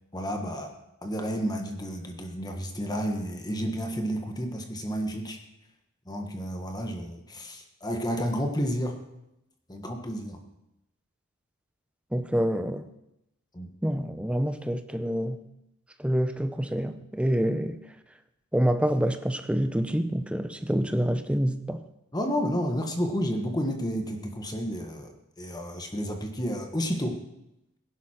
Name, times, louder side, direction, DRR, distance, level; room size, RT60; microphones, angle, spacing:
voice 1, 0.1-0.7 1.0-5.4 6.0-9.0 9.7-10.4 13.5-13.7 22.1-27.2, equal, 20° left, 1.4 m, -31 dB
voice 2, 12.1-12.9 13.8-15.4 16.0-17.8 18.5-21.8, equal, 5° right, 0.7 m, -27 dB
16.5 x 11.0 x 4.4 m
head